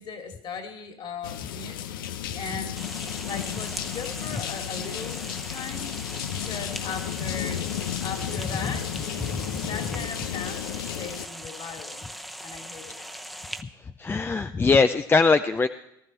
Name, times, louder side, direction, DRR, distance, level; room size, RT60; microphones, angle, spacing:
voice 1, 0.0-2.9 3.2-5.9 6.3-7.7 8.0-9.2 9.6-12.1 12.4-13.1, left 5 dB, 45° left, 6 dB, 2.5 m, -38 dB
sound 1, 1.2-11.3, left 11 dB, 80° left, 0.7 m, -33 dB
sound 2, 2.8-13.6, equal, ahead, 1.0 m, -40 dB
voice 2, 14.0-15.7, left 4 dB, 20° left, 10 dB, 0.5 m, -21 dB
19.0 x 13.0 x 4.4 m, 0.83 s
hypercardioid pair, 75°, 11 cm